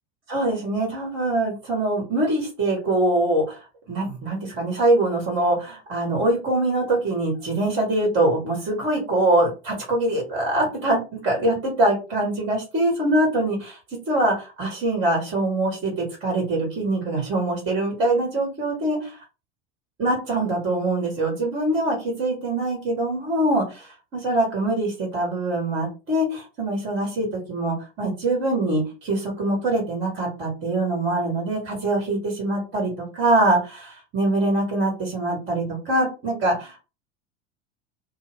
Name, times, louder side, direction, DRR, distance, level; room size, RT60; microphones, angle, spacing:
voice 1, 0.3-3.6 3.9-13.8 14.1-19.2 20.0-36.8, right 1 dB, 35° right, 0 dB, 1.2 m, -23 dB
2.2 x 2.1 x 3.3 m, 0.31 s
figure-of-eight pair, 75°, 36 cm